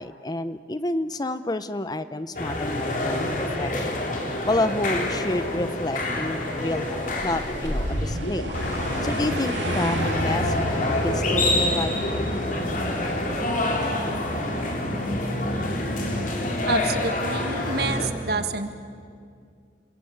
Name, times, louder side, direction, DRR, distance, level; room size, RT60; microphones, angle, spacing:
voice 1, 0.0-4.1 4.5-8.5 9.0-12.4, left 1 dB, 20° left, 12 dB, 0.6 m, -29 dB
sound 1, 2.4-18.1, left 1 dB, 45° left, 3.6 m, -27 dB
sound 2, 7.0-9.7, equal, 80° left, 3.5 m, -31 dB
sound 3, 7.1-13.2, right 1 dB, 75° right, 2.4 m, -36 dB
voice 2, 16.7-18.7, right 3 dB, 55° right, 9 dB, 1.7 m, -28 dB
28.5 x 22.0 x 8.6 m, 2.2 s
head